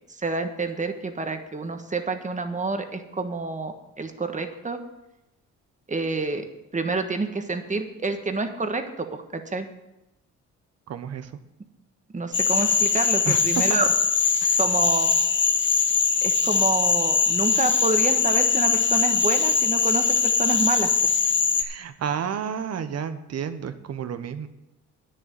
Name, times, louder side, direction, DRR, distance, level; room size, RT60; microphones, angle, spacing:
voice 1, 0.1-4.8 5.9-6.4 6.7-9.7 12.1-13.9 14.6-15.1 16.2-20.9, right 3 dB, 25° right, 7 dB, 1.4 m, -28 dB
voice 2, 10.9-11.3 13.2-13.8 14.4-14.6 21.6-24.5, right 7 dB, 55° right, 11 dB, 1.0 m, -31 dB
Cricket / Frog, 12.3-21.6, left 5 dB, 40° left, 1.2 m, -21 dB
9.9 x 6.8 x 7.7 m, 0.92 s
cardioid pair, 90°, 30 cm